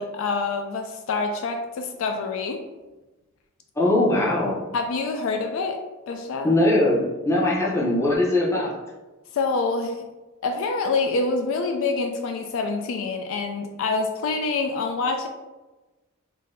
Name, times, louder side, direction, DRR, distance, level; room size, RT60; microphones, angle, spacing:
voice 1, 0.0-2.6 4.7-5.8 6.1-6.5 9.3-10.0 10.4-15.3, left 3 dB, 65° left, 5 dB, 0.3 m, -26 dB
voice 2, 3.8-4.6 6.4-8.7, left 1 dB, 15° left, -4 dB, 0.7 m, -21 dB
3.7 x 2.7 x 2.6 m, 1.2 s
head